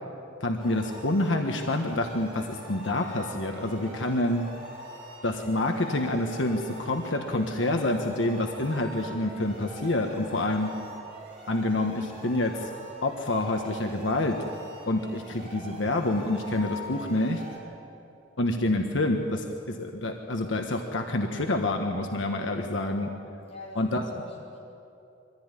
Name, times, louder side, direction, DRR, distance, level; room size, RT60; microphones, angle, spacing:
voice 1, 0.4-4.5 5.2-10.7 11.5-12.7 13.0-14.4 14.9-17.4 18.4-23.1 23.7-24.0, left 2 dB, 85° left, 4 dB, 1.4 m, -27 dB
sound 1, 0.6-17.6, right 1 dB, 30° right, 6.1 m, -44 dB
voice 2, 23.4-24.6, equal, 35° left, -3 dB, 6.2 m, -45 dB
23.5 x 15.0 x 9.9 m, 2.8 s
head